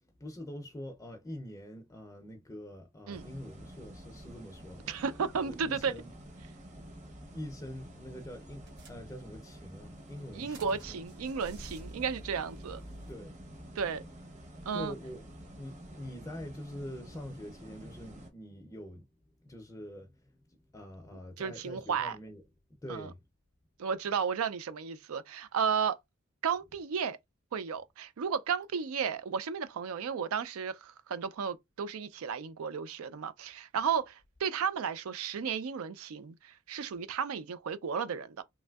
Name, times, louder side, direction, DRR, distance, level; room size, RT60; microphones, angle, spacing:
voice 1, 0.2-4.9 5.4-6.1 7.3-11.0 13.1-13.4 14.7-15.2 15.6-19.0 19.4-22.4 22.7-23.2, left 1 dB, 15° left, 0.4 m, -45 dB
sound 1, 3.1-18.3, right 1 dB, 35° right, 0.8 m, -49 dB
voice 2, 4.9-5.9 10.3-12.8 13.8-14.1 14.7-14.9 21.4-22.2 22.9-23.1 23.8-26.0 26.4-27.2 27.5-38.4, right 6 dB, 85° right, 0.4 m, -33 dB
sound 2, 7.7-7.9 8.2-8.3 8.7-9.5 10.0-13.1, equal, 55° right, 1.1 m, -49 dB
3.2 x 2.6 x 2.2 m
head